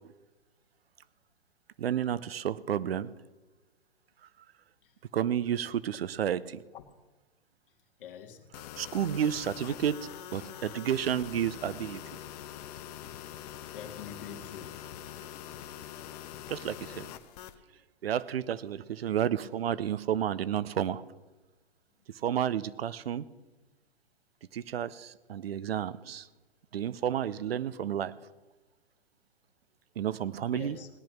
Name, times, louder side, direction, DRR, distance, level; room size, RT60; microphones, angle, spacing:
voice 1, 1.8-3.1 5.1-6.6 8.8-12.0 16.5-17.1 18.0-21.0 22.2-23.3 24.5-26.3 26.7-28.1 30.0-30.8, right 9 dB, 65° right, 18 dB, 0.8 m, -31 dB
voice 2, 8.0-8.4 13.7-14.8 15.9-16.1 16.5-16.7 30.5-30.9, left 8 dB, 55° left, 4 dB, 2.1 m, -45 dB
sound 1, 8.5-17.6, left 11 dB, 40° left, 1.1 m, -44 dB
18.5 x 10.5 x 6.0 m, 1.2 s
figure-of-eight pair, 120°, 32 cm